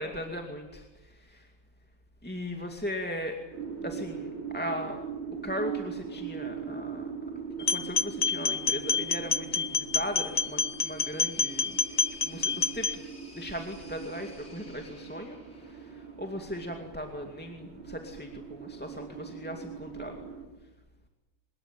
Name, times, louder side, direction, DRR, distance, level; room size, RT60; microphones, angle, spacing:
voice 1, 0.0-1.5 2.2-3.4 3.8-5.0 5.4-7.1 7.7-11.8 12.2-13.0 13.3-20.2, equal, 5° left, 2 dB, 2.3 m, -38 dB
sound 1, 3.5-20.5, right 6 dB, 90° right, 5.2 m, -41 dB
sound 2, 7.6-12.9, left 4 dB, 75° left, 0.3 m, -28 dB
sound 3, 10.0-16.2, left 2 dB, 40° left, 4.2 m, -54 dB
25.0 x 21.5 x 9.2 m, 1.1 s
omnidirectional pair, 2.2 m